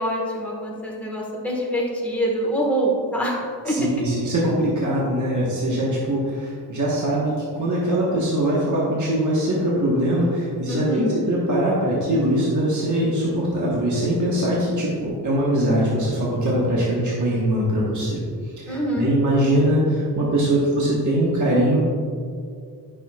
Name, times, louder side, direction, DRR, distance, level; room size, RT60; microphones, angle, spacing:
voice 1, 0.0-3.4 3.6-3.8 10.7-11.1 18.7-19.1, right 1 dB, 5° left, -4 dB, 1.5 m, -25 dB
voice 2, 3.7-18.2 18.6-21.8, right 1 dB, 45° right, -5 dB, 1.4 m, -22 dB
9.1 x 6.3 x 2.4 m, 2.2 s
wide cardioid pair, 105°, 41 cm